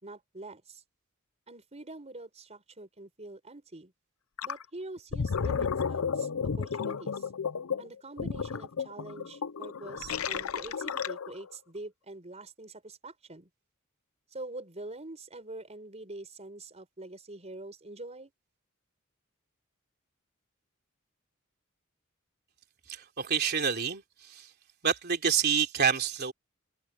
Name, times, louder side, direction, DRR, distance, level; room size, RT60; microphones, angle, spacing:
voice 1, 0.0-0.8 1.5-3.9 4.4-6.3 6.6-7.3 7.8-13.5 14.3-18.3, right 2 dB, 30° right, 4.9 m, -45 dB
Gurgling, 4.4-4.6 5.0-11.5, left 6 dB, 90° left, 0.6 m, -32 dB
voice 2, 22.9-24.5 24.8-26.3, right 7 dB, 50° right, 3.2 m, -28 dB
head